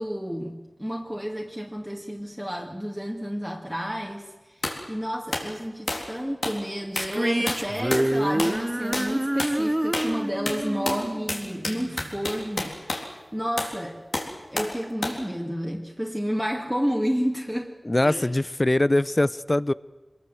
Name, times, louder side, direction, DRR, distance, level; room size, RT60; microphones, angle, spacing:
voice 1, 0.0-4.6 4.9-13.0 13.3-14.0 14.5-17.7 18.0-18.3, equal, 5° right, 2.4 m, -30 dB
sound 1, 4.6-4.8 5.3-5.5 5.9-6.1 6.4-6.6 7.0-7.2 7.5-8.1 8.4-8.6 8.9-9.1 9.4-9.6 9.9-10.2 10.5-13.1 13.6-13.8 14.1-14.8 15.0-15.2, left 2 dB, 75° left, 3.8 m, -30 dB
sound 2, 6.9-12.3, right 1 dB, 20° right, 0.9 m, -28 dB
voice 2, 17.9-19.7, left 1 dB, 35° left, 0.7 m, -22 dB
24.5 x 21.0 x 7.8 m
wide cardioid pair, 45°, 0 cm